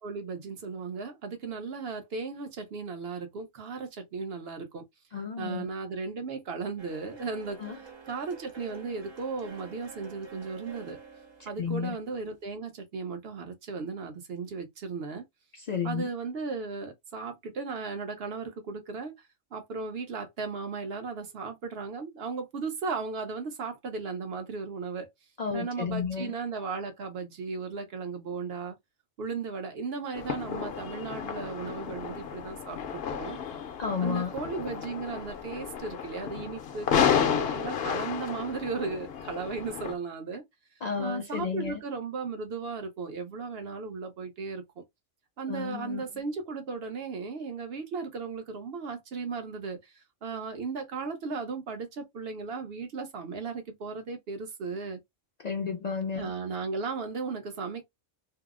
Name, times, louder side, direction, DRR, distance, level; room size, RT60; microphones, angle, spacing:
voice 1, 0.0-4.8 5.4-11.0 11.4-15.2 15.8-25.1 25.5-28.8 29.2-33.4 34.0-40.4 41.0-44.8 45.4-55.0 56.2-57.8, right 4 dB, 55° right, 1.0 m, -36 dB
voice 2, 5.1-5.7 7.6-7.8 11.4-12.0 15.5-16.1 25.4-26.3 33.8-34.3 40.8-41.8 45.5-46.0 55.4-56.3, left 6 dB, 85° left, 0.3 m, -32 dB
sound 1, 6.8-12.5, right 5 dB, 40° right, 0.4 m, -48 dB
sound 2, 30.1-39.9, left 8 dB, 60° left, 0.8 m, -32 dB
2.7 x 2.0 x 3.6 m
omnidirectional pair, 1.3 m